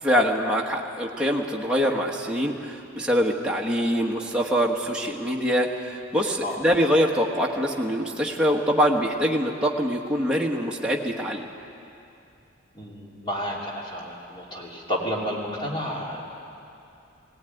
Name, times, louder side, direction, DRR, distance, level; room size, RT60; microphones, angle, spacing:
voice 1, 0.0-11.5, equal, 5° right, -2 dB, 1.3 m, -24 dB
voice 2, 12.7-16.2, equal, 25° left, -3 dB, 2.9 m, -31 dB
18.5 x 18.5 x 9.2 m, 2.7 s
head